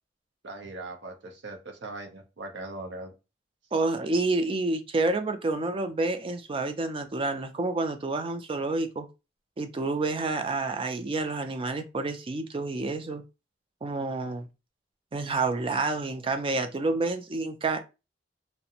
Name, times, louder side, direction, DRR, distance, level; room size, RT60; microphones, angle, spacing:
voice 1, 0.4-3.1, right 2 dB, 70° right, 0.7 m, -40 dB
voice 2, 3.7-9.1 9.6-13.2 13.8-14.5 15.1-17.8, right 3 dB, 30° right, 0.4 m, -29 dB
2.5 x 2.1 x 2.8 m
head